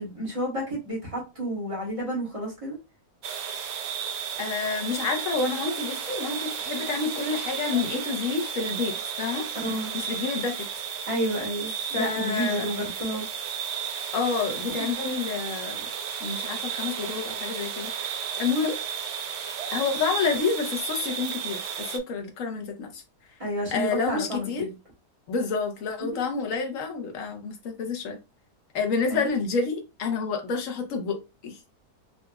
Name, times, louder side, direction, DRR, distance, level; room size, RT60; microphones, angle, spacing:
voice 1, 0.0-2.8 9.6-9.9 11.1-13.4 23.4-24.7 26.1-26.2 29.1-29.2, equal, 20° right, 1.4 m, -30 dB
sound 1, 3.2-22.0, right 7 dB, 70° right, 0.7 m, -33 dB
voice 2, 4.4-9.5 9.9-10.7 11.9-12.7 14.1-15.9 16.2-17.9 18.4-18.8 19.7-23.0 23.7-24.7 25.3-28.2 28.7-31.2 31.4-31.6, left 5 dB, 60° left, 1.1 m, -29 dB
3.9 x 2.5 x 2.2 m
omnidirectional pair, 1.7 m